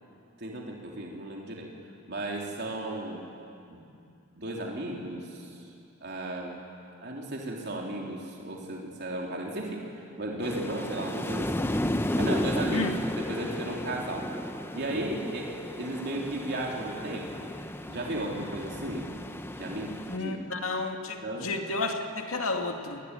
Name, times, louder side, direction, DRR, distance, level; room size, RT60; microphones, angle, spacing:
voice 1, 0.4-1.7 2.1-3.2 3.7-3.8 4.4-5.6 6.0-6.6 7.0-11.9 12.2-14.3 14.7-17.5 17.9-19.1 19.6-20.4 21.2-21.5, right 1 dB, 50° right, -1 dB, 3.5 m, -35 dB
sound 1, 10.4-20.2, left 1 dB, 10° left, 0.9 m, -33 dB
voice 2, 20.1-23.0, left 3 dB, 75° left, 3 dB, 2.3 m, -31 dB
26.5 x 20.5 x 9.9 m, 2.6 s
head